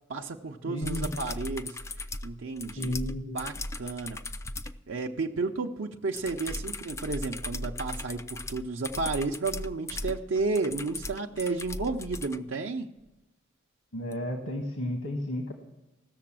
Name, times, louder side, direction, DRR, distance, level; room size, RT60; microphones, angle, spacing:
voice 1, 0.1-1.8 2.2-3.0 3.3-4.2 4.9-12.9, right 3 dB, 70° right, 2 dB, 0.6 m, -32 dB
voice 2, 0.7-1.1 2.7-3.4 13.9-15.5, equal, 85° left, 3 dB, 1.6 m, -32 dB
sound 1, 0.8-4.8 6.1-12.4 14.1-14.2, left 2 dB, 15° left, 0.4 m, -37 dB
16.5 x 6.8 x 7.4 m, 1.1 s
head